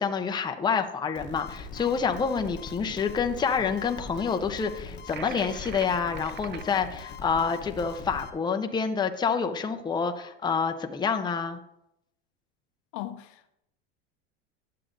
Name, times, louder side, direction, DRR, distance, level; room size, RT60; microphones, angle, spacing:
voice 1, 0.0-11.6, left 6 dB, 15° left, 0.6 m, -28 dB
sound 1, 1.1-8.3, left 4 dB, 35° left, 1.0 m, -42 dB
sound 2, 5.1-6.7, right 7 dB, 35° right, 0.6 m, -42 dB
voice 2, 12.9-13.6, left 14 dB, 60° left, 0.7 m, -38 dB
12.0 x 7.6 x 2.6 m
supercardioid pair, 105°, 32 cm